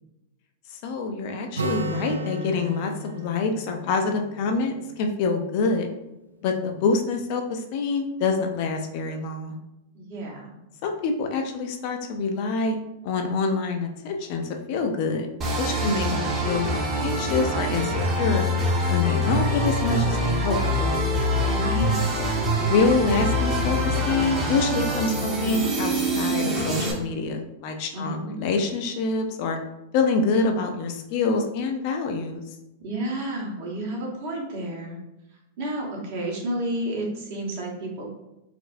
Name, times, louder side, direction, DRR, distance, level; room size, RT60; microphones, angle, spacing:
voice 1, 0.7-5.9 6.4-9.6 10.8-12.8 13.0-15.3 15.6-18.5 18.9-21.1 22.6-29.6 29.9-32.4, left 4 dB, 55° left, 4 dB, 0.5 m, -26 dB
Acoustic guitar, 1.5-5.3, right 2 dB, 90° right, 0.3 m, -34 dB
voice 2, 9.9-10.6 15.8-16.1 21.4-22.1 27.9-28.4 32.8-35.0 35.6-38.1, right 1 dB, 55° right, -2 dB, 1.1 m, -31 dB
sound 1, 15.4-26.9, equal, 30° right, 0.9 m, -24 dB
4.2 x 2.0 x 2.6 m, 0.93 s
hypercardioid pair, 100°, 0 cm